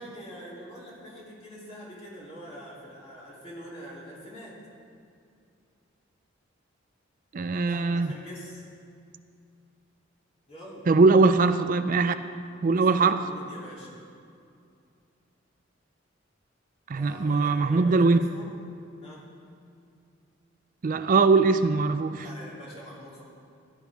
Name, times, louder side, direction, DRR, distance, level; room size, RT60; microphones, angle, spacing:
voice 1, 0.0-4.6 7.6-8.6 10.5-10.9 12.7-14.0 16.9-18.5 19.0-19.2 22.0-23.2, equal, 35° left, -6 dB, 3.3 m, -44 dB
voice 2, 7.3-8.1 10.9-12.2 12.6-13.2 16.9-18.2 20.8-22.3, right 4 dB, 45° right, 10 dB, 0.4 m, -21 dB
15.5 x 11.5 x 3.6 m, 2.4 s
head